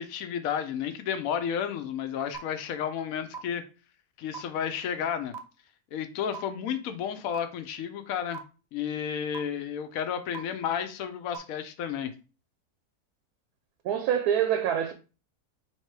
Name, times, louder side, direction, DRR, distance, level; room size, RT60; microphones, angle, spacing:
voice 1, 0.0-3.6 4.2-5.3 5.9-8.4 8.7-12.1, left 8 dB, 70° left, 1.0 m, -32 dB
sound 1, 2.3-2.4 3.3-3.4 4.3-4.4 5.3-5.4 6.3-6.4 7.3-7.4 8.3-8.4 9.3-9.4 10.3-10.4 11.3-11.4, right 6 dB, 55° right, 0.8 m, -37 dB
voice 2, 13.8-14.9, right 9 dB, 85° right, 1.1 m, -25 dB
3.6 x 2.9 x 4.6 m
omnidirectional pair, 1.6 m